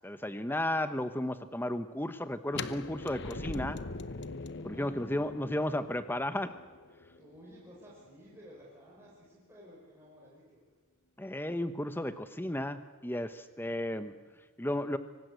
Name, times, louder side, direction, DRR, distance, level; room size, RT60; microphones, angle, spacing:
voice 1, 0.0-3.8 4.6-6.5 11.2-14.1 14.6-15.0, left 1 dB, 10° left, 11 dB, 1.0 m, -34 dB
sound 1, 2.5-8.3, left 3 dB, 55° left, 0.9 m, -42 dB
voice 2, 4.6-5.0 7.2-10.7 14.0-14.4, equal, 10° right, -5 dB, 5.2 m, -55 dB
24.5 x 19.0 x 8.1 m, 1.3 s
head